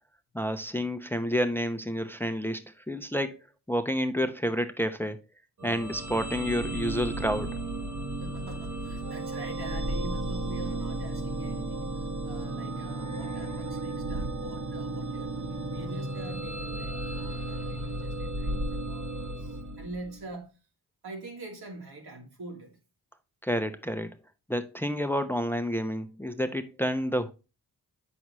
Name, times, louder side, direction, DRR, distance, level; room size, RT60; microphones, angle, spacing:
voice 1, 0.3-2.6 2.9-3.3 3.7-5.2 5.6-7.6 23.4-24.1 24.5-27.3, equal, 5° left, 0.7 m, -29 dB
sound 1, 5.6-20.3, right 2 dB, 45° right, 1.4 m, -34 dB
voice 2, 8.2-20.5 21.0-22.8, right 2 dB, 75° right, 2.6 m, -44 dB
7.9 x 6.1 x 3.0 m
cardioid pair, 65°, 39 cm